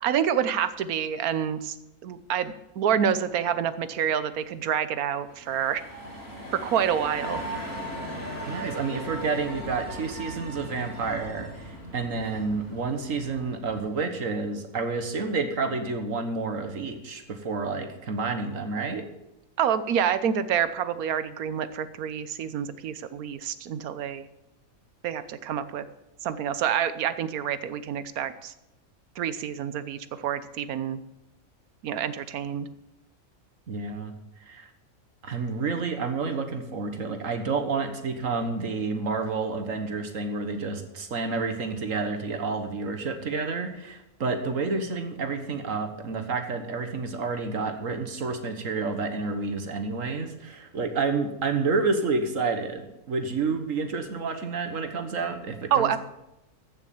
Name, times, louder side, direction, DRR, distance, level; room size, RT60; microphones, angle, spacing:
voice 1, 0.0-1.8 2.0-5.8 6.5-7.4 19.6-24.2 25.0-25.8 26.2-28.5 29.2-31.0 31.8-32.7 55.7-56.0, right 8 dB, 75° right, 13 dB, 1.3 m, -27 dB
sound 1, 5.2-13.9, equal, 65° left, 4.3 m, -38 dB
voice 2, 8.5-19.0 33.7-34.1 34.5-34.7 35.2-56.0, right 4 dB, 60° right, 7 dB, 1.7 m, -29 dB
14.5 x 6.4 x 7.2 m, 0.89 s
omnidirectional pair, 1.6 m